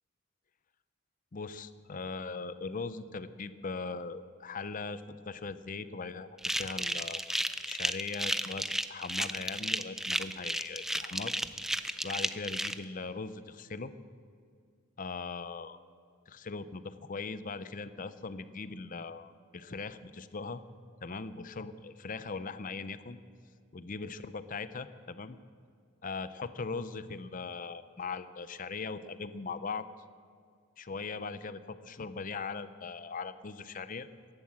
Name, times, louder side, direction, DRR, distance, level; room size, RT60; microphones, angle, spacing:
voice 1, 1.3-6.3 6.6-13.9 15.0-15.8 16.3-20.6 21.0-23.2 23.7-25.4 26.0-29.9 30.8-34.1, left 4 dB, 40° left, 13 dB, 0.6 m, -40 dB
sound 1, 6.4-12.7, right 1 dB, ahead, 0.4 m, -33 dB
16.0 x 11.5 x 7.6 m, 2.1 s
head